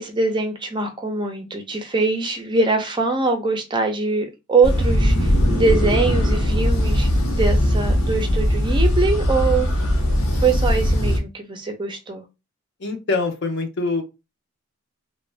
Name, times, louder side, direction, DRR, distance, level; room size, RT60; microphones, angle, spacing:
voice 1, 0.0-7.1 7.4-9.7 10.4-12.2, right 3 dB, 20° right, 0.4 m, -23 dB
sound 1, 4.6-11.2, equal, 90° left, 0.8 m, -19 dB
voice 2, 12.8-14.0, left 3 dB, 55° left, 0.5 m, -24 dB
2.5 x 2.1 x 3.2 m
head